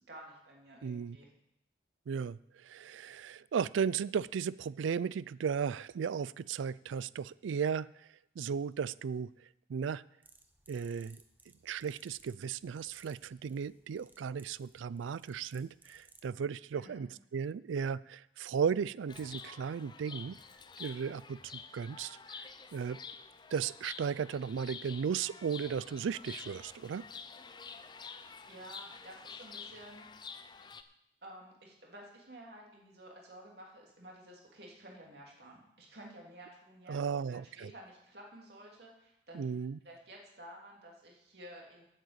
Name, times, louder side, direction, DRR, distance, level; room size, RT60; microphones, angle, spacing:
voice 1, 0.1-1.3 16.7-17.0 28.0-30.1 31.2-39.4 39.8-41.8, right 1 dB, 60° right, -2 dB, 2.9 m, -52 dB
voice 2, 0.8-1.2 2.1-7.9 8.4-9.3 9.7-10.0 10.7-11.2 11.6-20.4 20.8-22.5 22.7-23.0 23.5-27.0 36.9-37.7 39.3-39.8, right 6 dB, 85° right, 20 dB, 0.4 m, -35 dB
sound 1, 10.2-16.4, right 3 dB, 10° right, 0.7 m, -63 dB
Chirp tweet, 19.1-30.8, left 5 dB, 25° left, 0.5 m, -49 dB
8.7 x 7.8 x 8.1 m, 0.81 s
head